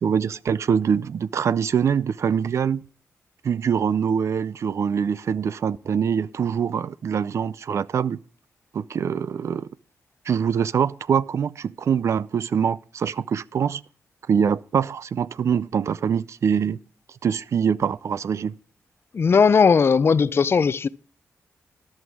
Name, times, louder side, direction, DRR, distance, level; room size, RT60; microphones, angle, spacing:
voice 1, 0.0-2.8 3.4-8.2 8.7-9.7 10.3-13.8 14.3-16.8 17.2-18.6, right 7 dB, 65° right, 0.5 m, -24 dB
voice 2, 19.1-20.9, left 5 dB, 50° left, 0.5 m, -17 dB
14.0 x 11.0 x 3.6 m
cardioid pair, 80°, 5 cm